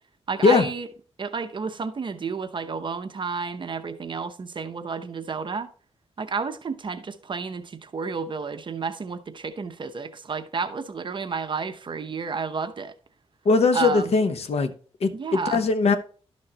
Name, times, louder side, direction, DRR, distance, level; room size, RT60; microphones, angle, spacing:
voice 1, 0.3-0.9 1.2-5.7 6.2-12.9 13.7-14.1 15.1-15.6, right 5 dB, 45° right, 0.9 m, -31 dB
voice 2, 13.4-14.7 15.0-16.0, left 4 dB, 70° left, 1.0 m, -20 dB
12.5 x 6.3 x 2.9 m
wide cardioid pair, 120°, 11 cm